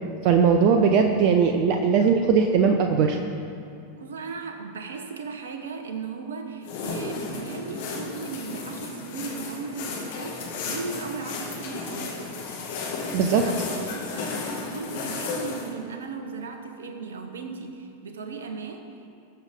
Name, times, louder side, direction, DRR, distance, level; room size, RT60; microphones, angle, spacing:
voice 1, 0.2-3.2 13.1-13.4, right 6 dB, 45° right, 4 dB, 0.7 m, -19 dB
voice 2, 3.9-12.2 13.2-19.2, right 5 dB, 65° right, 6 dB, 1.2 m, -37 dB
sound 1, 6.6-15.7, left 4 dB, 55° left, 2.1 m, -33 dB
20.0 x 7.2 x 3.7 m, 2.5 s
figure-of-eight pair, 90°, 0 cm